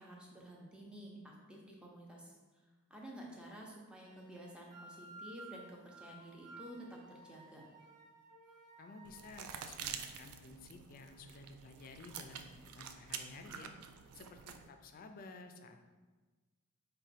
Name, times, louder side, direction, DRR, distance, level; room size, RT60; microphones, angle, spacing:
voice 1, 0.0-2.4 2.9-7.6, right 1 dB, 5° right, -2 dB, 0.6 m, -51 dB
sound 1, 4.0-9.3, right 3 dB, 40° right, 0.9 m, -56 dB
voice 2, 8.8-13.7 14.1-15.8, left 3 dB, 40° left, 6 dB, 0.3 m, -53 dB
sound 2, 9.0-14.7, right 7 dB, 90° right, 0.3 m, -48 dB
4.9 x 2.2 x 4.1 m, 1.3 s
head